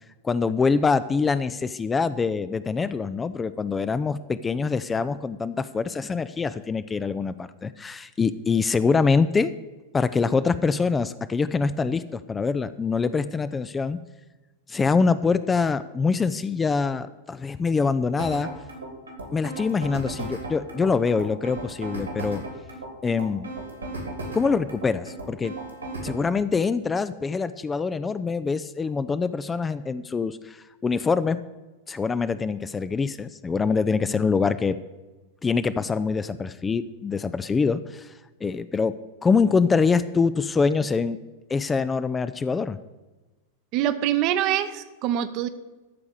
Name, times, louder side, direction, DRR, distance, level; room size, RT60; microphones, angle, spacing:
voice 1, 0.2-9.5 9.9-14.0 14.7-18.5 19.3-22.4 23.0-23.5 24.3-25.5 26.0-31.4 31.9-34.8 35.4-38.1 38.4-38.9 39.2-41.2 41.5-42.8, left 4 dB, 15° left, 13 dB, 0.4 m, -24 dB
sound 1, 18.2-26.2, right 2 dB, 80° right, 2.9 m, -35 dB
voice 2, 43.7-45.5, right 11 dB, 40° right, 11 dB, 0.8 m, -24 dB
13.5 x 4.8 x 8.5 m, 1.2 s
figure-of-eight pair, 90°, 0 cm